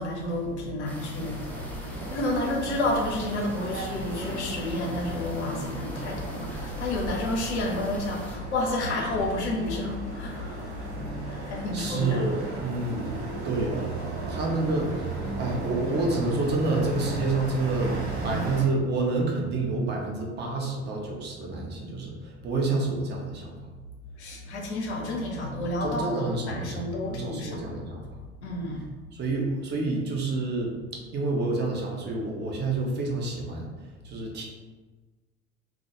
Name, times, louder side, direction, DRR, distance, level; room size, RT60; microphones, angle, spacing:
voice 1, 0.0-12.3 24.2-27.7 28.4-28.9, left 1 dB, 75° left, 0 dB, 0.6 m, -30 dB
sound 1, 0.8-8.4, left 1 dB, 5° left, 0.4 m, -42 dB
sound 2, 1.2-18.6, right 2 dB, 70° right, 0.9 m, -35 dB
voice 2, 11.3-13.0 13.4-13.9 14.3-18.0 18.2-23.6 25.8-28.2 29.1-30.7 31.1-33.7 34.0-34.4, right 3 dB, 30° right, -1 dB, 0.7 m, -28 dB
2.2 x 2.2 x 2.9 m, 1.3 s
figure-of-eight pair, 65°, 34 cm